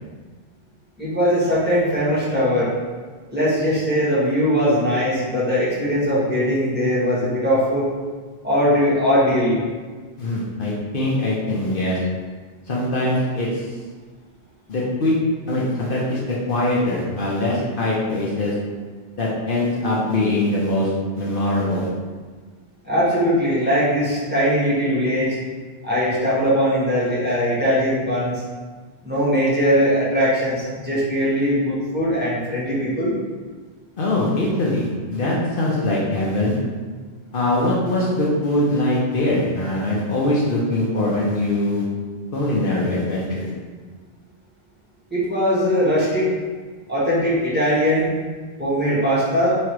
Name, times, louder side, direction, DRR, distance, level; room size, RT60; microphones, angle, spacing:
voice 1, 1.0-2.7 3.3-7.9 8.4-9.6 22.8-25.4 25.8-28.3 29.0-33.1 45.1-46.3 46.9-48.2 48.6-49.6, equal, 10° right, -10 dB, 1.4 m, -20 dB
voice 2, 10.2-12.0 12.7-13.7 14.7-15.1 15.5-18.5 19.2-20.9 21.2-21.9 34.0-36.6 37.3-41.8 42.3-43.5, left 1 dB, 60° left, -5 dB, 1.0 m, -22 dB
3.7 x 3.1 x 4.6 m, 1.4 s
omnidirectional pair, 1.0 m